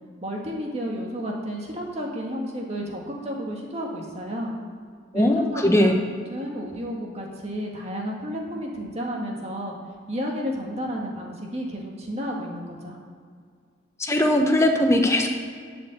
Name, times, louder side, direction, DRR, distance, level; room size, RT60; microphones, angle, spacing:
voice 1, 0.2-4.5 5.1-6.0 6.3-9.7 10.1-13.0, equal, 35° right, -1 dB, 1.7 m, -32 dB
voice 2, 5.1-5.9 14.0-15.3, left 1 dB, 15° left, 3 dB, 1.0 m, -20 dB
11.5 x 5.2 x 8.1 m, 2.1 s
head